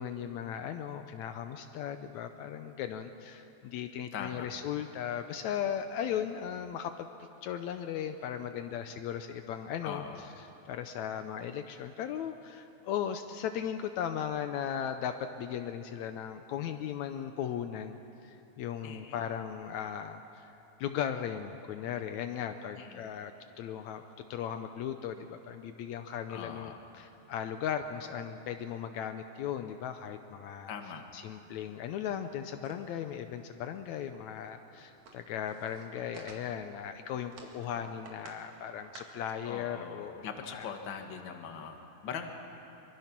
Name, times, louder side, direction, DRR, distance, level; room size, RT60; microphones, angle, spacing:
voice 1, 0.0-7.1 7.4-10.0 10.7-20.5 20.8-23.3 23.6-24.1 24.3-30.7 31.1-40.2 40.5-40.7, left 9 dB, 75° left, 8 dB, 2.0 m, -37 dB
voice 2, 4.1-4.5 9.8-10.3 18.8-19.2 22.7-23.0 26.3-26.8 30.7-31.1 37.7-37.8 39.4-42.3, left 7 dB, 45° left, 5 dB, 1.9 m, -42 dB
sound 1, 32.6-33.0 33.4-33.5 33.7-33.8 34.1-34.2 34.5-36.8 37.2-38.5 38.7-39.3, right 4 dB, 70° right, 3.4 m, -52 dB
24.5 x 24.0 x 6.0 m, 3.0 s
omnidirectional pair, 3.4 m